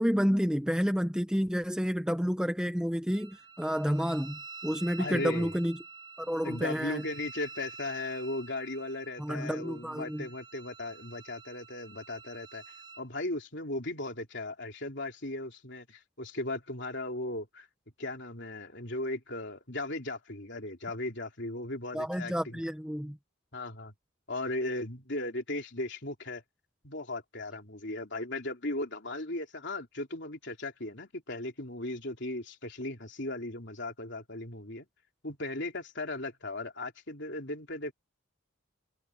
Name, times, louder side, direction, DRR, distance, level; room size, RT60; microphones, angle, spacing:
voice 1, 0.0-5.8 6.2-7.0 9.2-10.3 21.9-23.2, equal, 5° right, 1.0 m, -30 dB
Wind instrument woodwind instrument, 3.1-13.0, right 4 dB, 20° right, 3.4 m, -49 dB
voice 2, 5.0-5.5 6.4-12.6 13.0-17.7 18.0-22.6 23.5-23.9 24.3-26.4 26.8-34.9 35.2-37.9, left 2 dB, 55° left, 3.8 m, -37 dB
head